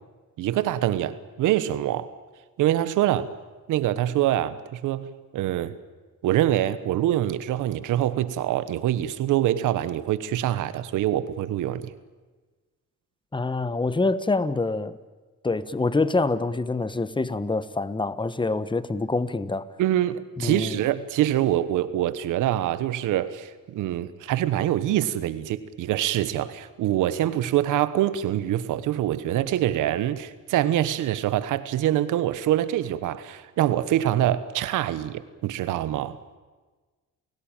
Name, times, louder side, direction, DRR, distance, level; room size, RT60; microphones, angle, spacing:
voice 1, 0.4-2.1 2.6-3.3 3.7-5.8 6.2-11.9 19.8-36.2, right 12 dB, 90° right, 1.3 m, -25 dB
voice 2, 13.3-15.0 15.4-19.7 20.4-20.8, left 3 dB, 15° left, 1.2 m, -26 dB
29.5 x 16.5 x 9.1 m
cardioid pair, 90°, 30 cm